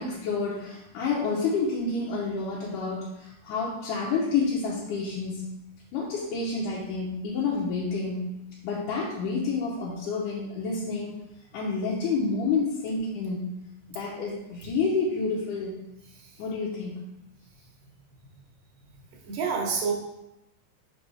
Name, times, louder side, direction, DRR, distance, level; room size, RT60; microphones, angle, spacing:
voice 1, 0.0-5.5 5.9-11.1 11.5-13.6 13.9-15.8 16.4-17.0, left 4 dB, 85° left, -5 dB, 2.4 m, -29 dB
voice 2, 19.2-19.9, right 5 dB, 65° right, 0 dB, 1.8 m, -29 dB
5.4 x 5.4 x 3.3 m, 0.89 s
omnidirectional pair, 3.6 m